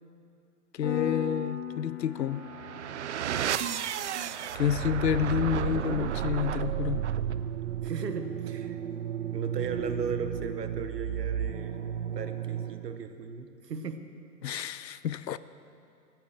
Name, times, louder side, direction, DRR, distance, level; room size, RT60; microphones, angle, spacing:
voice 1, 0.7-2.4 4.5-7.0 14.4-15.4, left 9 dB, 80° left, 16 dB, 0.7 m, -29 dB
Piano, 0.8-11.2, left 8 dB, 15° left, 1.5 m, -43 dB
sound 1, 2.3-13.0, right 10 dB, 45° right, 0.5 m, -33 dB
voice 2, 7.8-8.8 9.3-11.9 12.1-14.0, right 5 dB, 70° right, 9 dB, 1.3 m, -36 dB
15.0 x 9.1 x 6.5 m, 2.5 s
figure-of-eight pair, 120°, 50 cm